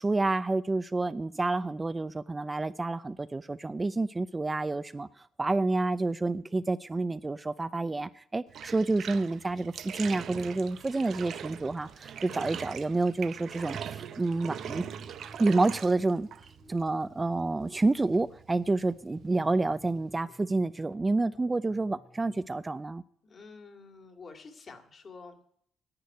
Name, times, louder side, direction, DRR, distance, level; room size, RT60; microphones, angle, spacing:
voice 1, 0.0-5.1 5.4-14.8 15.4-16.3 16.7-23.0, right 3 dB, 20° right, 0.5 m, -29 dB
Bathtub (filling or washing), 8.5-20.1, right 8 dB, 65° right, 0.8 m, -42 dB
sound 1, 13.4-22.4, left 2 dB, 15° left, 1.0 m, -57 dB
voice 2, 23.2-25.4, left 4 dB, 45° left, 2.3 m, -48 dB
10.5 x 8.6 x 9.4 m
cardioid pair, 90°, 0 cm